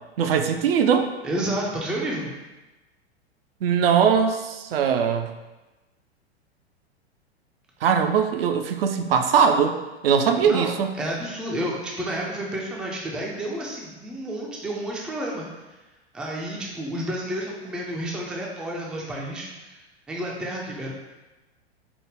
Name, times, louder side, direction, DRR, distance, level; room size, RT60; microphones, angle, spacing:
voice 1, 0.2-1.1 3.6-5.3 7.8-9.8 10.0-10.9, right 7 dB, 60° right, 6 dB, 0.5 m, -21 dB
voice 2, 1.2-2.3 10.4-15.5 16.1-19.8 20.1-20.9, right 1 dB, 5° right, -3 dB, 0.3 m, -30 dB
5.0 x 2.1 x 3.2 m, 1.1 s
figure-of-eight pair, 95°, 32 cm